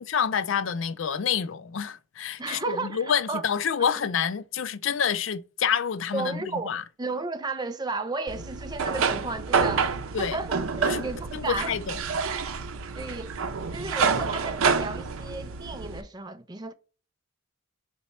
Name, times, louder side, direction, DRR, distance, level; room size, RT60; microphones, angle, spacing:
voice 1, 0.0-6.8 10.1-10.4 10.8-11.0 11.3-12.0, left 7 dB, 65° left, 0.4 m, -28 dB
voice 2, 2.4-3.4 6.1-6.7 7.0-11.8 13.0-13.3 13.7-16.7, right 3 dB, 20° right, 0.5 m, -33 dB
sound 1, 8.3-16.0, right 5 dB, 90° right, 0.6 m, -28 dB
4.4 x 4.1 x 5.6 m
head